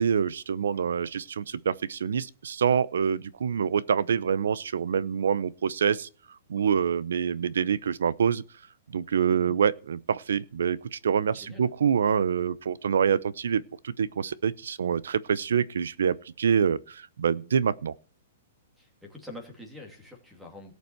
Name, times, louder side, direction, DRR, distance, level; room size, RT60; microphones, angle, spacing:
voice 1, 0.0-6.1 6.5-8.4 8.9-17.9, right 7 dB, 85° right, 0.7 m, -26 dB
voice 2, 11.3-11.7 18.8-20.7, left 1 dB, 5° right, 2.4 m, -45 dB
18.0 x 8.2 x 4.6 m
hypercardioid pair, 175°, 0 cm